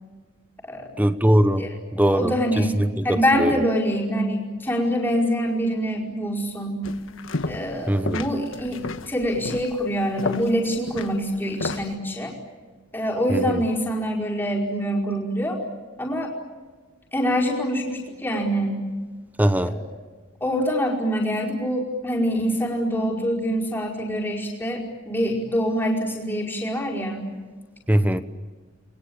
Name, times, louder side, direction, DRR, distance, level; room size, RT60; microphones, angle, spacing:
voice 1, 1.0-1.7 1.9-3.6 7.9-8.2 13.3-13.6 19.4-19.8 27.9-28.2, equal, 10° right, 1.0 m, -21 dB
voice 2, 2.0-2.7 3.0-6.8 7.5-12.3 12.9-15.6 16.0-16.3 17.1-18.8 19.6-19.9 20.4-27.3, equal, 10° left, 5.0 m, -25 dB
sound 1, 6.8-7.8 8.0-11.9, left 2 dB, 80° left, 1.4 m, -32 dB
29.5 x 22.0 x 8.8 m
head